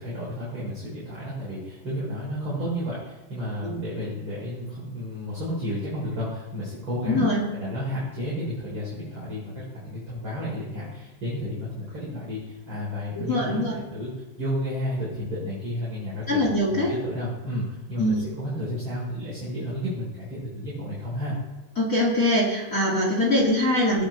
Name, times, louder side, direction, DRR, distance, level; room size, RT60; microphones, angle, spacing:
voice 1, 0.0-7.3 7.5-14.1 14.4-16.4 16.7-21.4, equal, 30° right, -8 dB, 4.2 m, -32 dB
voice 2, 7.1-7.4 13.2-13.8 16.3-16.9 18.0-18.2 21.7-24.0, left 1 dB, 35° left, -4 dB, 1.4 m, -23 dB
19.5 x 8.6 x 3.3 m, 1.1 s
omnidirectional pair, 5.2 m